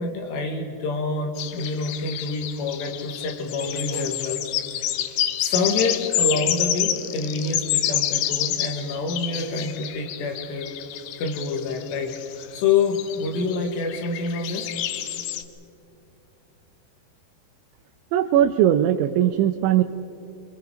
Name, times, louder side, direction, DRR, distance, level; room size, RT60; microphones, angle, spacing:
voice 1, 0.0-4.4 4.7-4.8 5.4-10.7 11.2-12.2 12.5-14.7, left 4 dB, 70° left, 2 dB, 4.3 m, -27 dB
sound 1, 1.4-15.4, left 12 dB, 85° left, 2.0 m, -28 dB
voice 2, 18.1-19.8, right 11 dB, 90° right, 5 dB, 3.1 m, -19 dB
26.0 x 24.0 x 5.0 m, 2.8 s
omnidirectional pair, 5.2 m